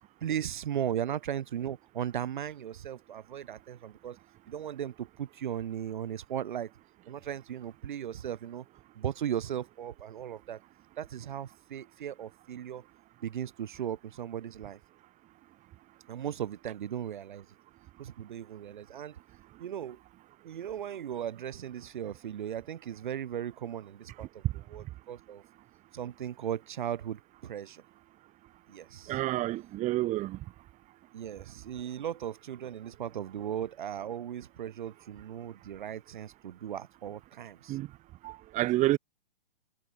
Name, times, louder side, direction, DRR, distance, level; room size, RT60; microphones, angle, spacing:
voice 1, 0.2-4.2 4.5-6.7 7.1-8.7 9.0-10.6 11.0-12.8 13.2-14.8 16.1-17.5 18.0-19.2 19.6-20.0 20.4-24.4 24.7-25.4 25.9-27.8 28.7-29.2 31.1-37.8, right 10 dB, 55° right, 7.5 m, -37 dB
voice 2, 24.2-24.5 29.1-30.4 37.7-37.9 38.2-39.0, right 16 dB, 25° right, 5.6 m, -29 dB
figure-of-eight pair, 115°, 29 cm